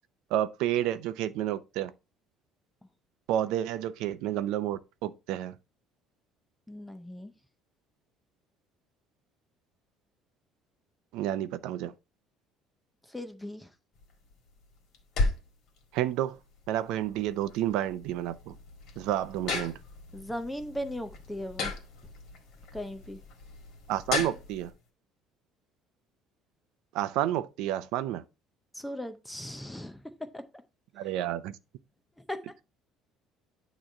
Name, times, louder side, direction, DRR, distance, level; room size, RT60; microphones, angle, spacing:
voice 1, 0.3-1.9 3.3-5.5 11.1-11.9 15.9-16.4 16.7-18.5 19.0-19.7 23.9-24.7 26.9-28.2 31.0-31.5, right 12 dB, 65° right, 0.5 m, -30 dB
voice 2, 6.7-7.3 13.1-13.7 20.1-21.7 22.7-23.2 28.7-30.4 31.0-31.1 32.2-32.4, left 1 dB, 5° left, 0.6 m, -38 dB
sound 1, 14.0-24.7, left 3 dB, 50° left, 1.7 m, -36 dB
8.8 x 3.0 x 5.2 m
cardioid pair, 170°, 0 cm